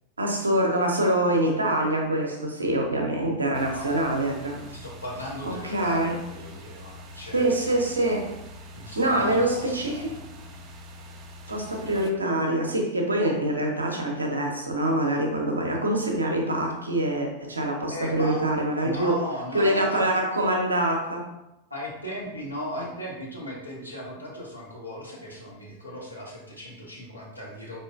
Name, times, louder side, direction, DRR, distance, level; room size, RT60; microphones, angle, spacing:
voice 1, 0.2-4.6 5.4-6.2 7.3-8.4 9.0-10.1 11.5-19.2 19.5-21.3 22.8-22.9, right 1 dB, 80° right, 1 dB, 0.6 m, -25 dB
sound 1, 3.5-12.1, left 1 dB, 35° right, 0.4 m, -44 dB
voice 2, 4.7-7.5 8.7-10.6 17.9-18.5 18.8-20.1 21.7-27.8, equal, 85° left, -4 dB, 0.9 m, -37 dB
4.4 x 2.6 x 2.4 m, 0.90 s
figure-of-eight pair, 90°, 0 cm